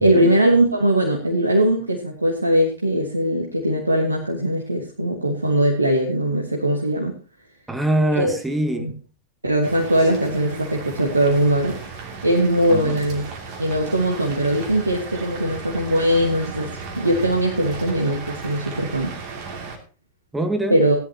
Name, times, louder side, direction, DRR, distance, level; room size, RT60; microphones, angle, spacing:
voice 1, 0.0-7.2 8.2-8.3 8.8-8.9 9.4-11.8 12.2-13.2 13.6-19.1 20.7-21.0, right 1 dB, 80° right, 1.8 m, -20 dB
voice 2, 7.7-9.0 12.7-13.0 20.3-20.8, right 1 dB, 10° right, 1.5 m, -23 dB
sound 1, 9.6-19.8, right 4 dB, 45° right, 2.7 m, -35 dB
17.5 x 10.5 x 2.9 m
figure-of-eight pair, 90°, 0 cm